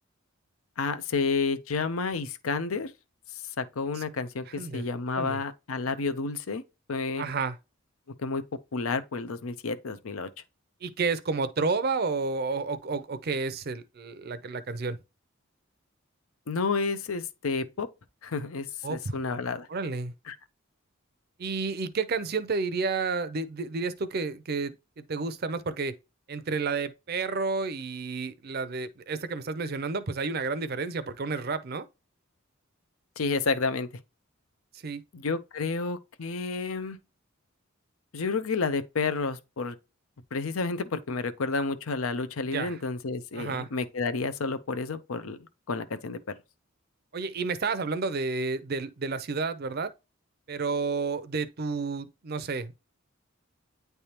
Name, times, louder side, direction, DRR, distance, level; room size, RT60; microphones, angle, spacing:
voice 1, 0.8-2.9 3.3-6.6 6.9-7.3 8.2-8.4 8.7-10.3 16.5-17.9 18.2-19.7 20.3-20.4 33.2-33.9 35.1-37.0 38.1-39.8 40.3-46.2, left 4 dB, 85° left, 0.6 m, -30 dB
voice 2, 4.5-4.8 5.1-5.4 7.2-7.6 10.8-15.0 18.8-19.2 19.7-20.1 21.4-25.9 26.3-31.8 34.8-35.0 42.5-42.8 43.3-43.7 47.1-49.9 50.5-52.7, right 4 dB, 50° right, 0.5 m, -31 dB
9.5 x 3.4 x 2.9 m
head